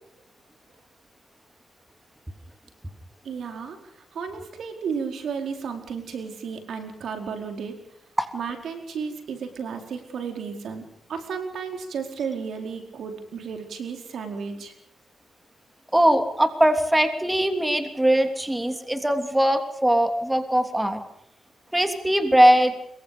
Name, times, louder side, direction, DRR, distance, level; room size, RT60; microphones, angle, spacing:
voice 1, 3.2-7.8 8.3-10.8 11.1-14.7, right 6 dB, 75° right, 5 dB, 4.7 m, -33 dB
voice 2, 15.9-21.0 21.7-22.7, right 1 dB, 10° right, 7 dB, 3.2 m, -20 dB
26.0 x 23.0 x 5.2 m, 0.77 s
cardioid pair, 85°, 0 cm